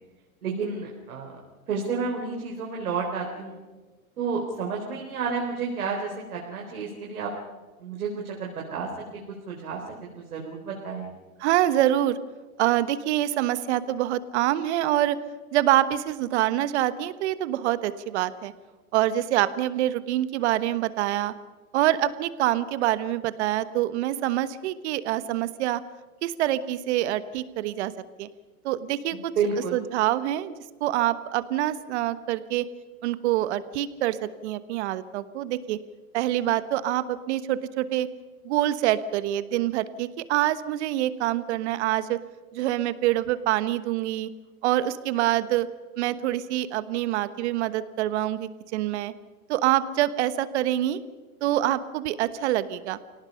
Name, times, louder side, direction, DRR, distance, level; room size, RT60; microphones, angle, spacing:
voice 1, 0.4-1.4 1.7-3.6 4.2-7.3 7.8-9.2 9.5-9.8 10.2-11.1 29.4-29.8, right 5 dB, 80° right, -1 dB, 4.4 m, -30 dB
voice 2, 11.4-12.2 12.6-15.2 15.5-18.5 18.9-21.3 21.7-25.8 26.2-27.9 28.2-28.3 28.6-29.3 29.7-30.5 30.8-32.7 33.0-35.8 36.1-38.1 38.4-42.2 42.5-44.3 44.6-45.7 46.0-49.1 49.5-51.0 51.4-53.0, right 13 dB, 50° right, 14 dB, 1.2 m, -25 dB
29.0 x 18.0 x 5.7 m, 1.3 s
hypercardioid pair, 140°, 43 cm